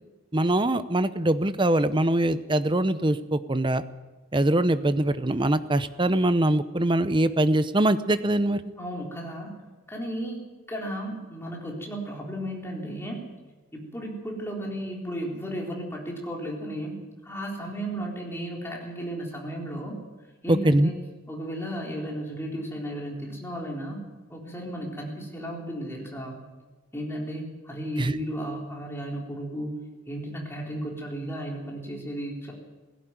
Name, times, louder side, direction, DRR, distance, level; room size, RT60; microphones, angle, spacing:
voice 1, 0.3-3.8 4.3-8.6 20.5-20.9 28.0-28.2, right 1 dB, 20° right, 13 dB, 0.7 m, -23 dB
voice 2, 8.8-9.5 9.9-10.4 10.7-13.2 13.7-17.0 17.2-20.0 20.4-20.9 21.3-24.0 24.3-26.4 26.9-32.5, equal, 10° left, -1 dB, 3.8 m, -34 dB
17.5 x 16.0 x 9.2 m, 1.2 s
head